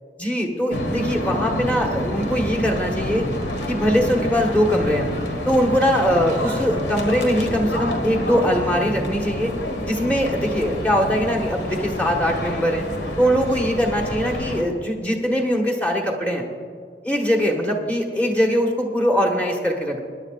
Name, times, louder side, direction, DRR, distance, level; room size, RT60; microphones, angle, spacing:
voice 1, 0.2-3.2 3.7-5.1 5.5-9.5 9.8-12.8 13.2-16.4 17.0-20.0, equal, 10° left, 0 dB, 1.3 m, -21 dB
sound 1, 0.7-14.6, equal, 90° left, 1.6 m, -28 dB
21.5 x 10.5 x 2.4 m, 2.1 s
head